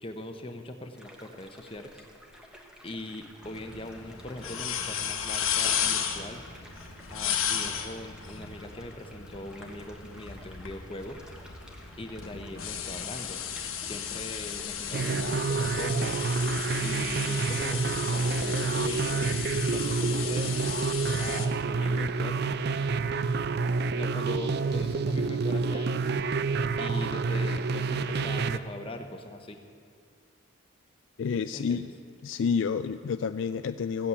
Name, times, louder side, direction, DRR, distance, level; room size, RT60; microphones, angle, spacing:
voice 1, 0.0-2.1 2.8-6.4 7.1-11.2 12.0-13.4 13.8-16.2 16.8-17.8 18.1-19.3 19.7-20.6 21.2-22.4 23.9-26.1 26.7-29.6 31.5-31.9, left 1 dB, 25° left, 5 dB, 0.9 m, -41 dB
sound 1, 0.9-19.0, equal, 5° right, 1.2 m, -53 dB
sound 2, 3.4-21.5, left 8 dB, 80° left, 1.2 m, -34 dB
sound 3, 14.9-28.6, right 4 dB, 50° right, 0.4 m, -28 dB
voice 2, 31.2-31.9 32.2-34.1, left 6 dB, 60° left, 11 dB, 0.3 m, -29 dB
15.5 x 8.4 x 8.3 m, 2.3 s
head